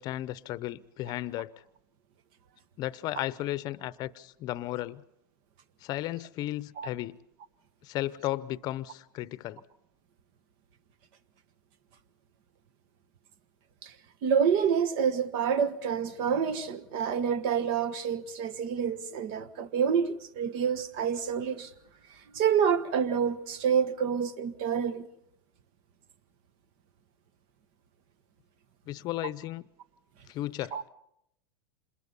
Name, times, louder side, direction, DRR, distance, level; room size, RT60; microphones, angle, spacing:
voice 1, 0.0-1.5 2.8-5.0 5.8-7.2 7.8-9.6 28.9-29.7 30.3-30.9, left 15 dB, 40° left, 0.8 m, -34 dB
voice 2, 14.2-21.7 22.3-25.1 30.7-30.8, right 7 dB, 50° right, 1.3 m, -28 dB
27.0 x 21.5 x 5.5 m
supercardioid pair, 125°, 11 cm